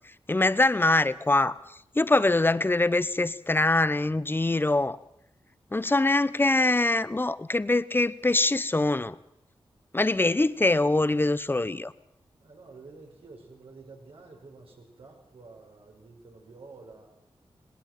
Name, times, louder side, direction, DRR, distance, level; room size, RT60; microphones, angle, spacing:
voice 1, 0.3-1.6 2.0-5.0 5.7-9.2 9.9-11.9, left 2 dB, 20° left, 16 dB, 0.9 m, -23 dB
voice 2, 12.4-17.1, right 3 dB, 80° right, 0 dB, 5.4 m, -49 dB
19.5 x 18.0 x 7.6 m, 0.74 s
cardioid pair, 70°, 10 cm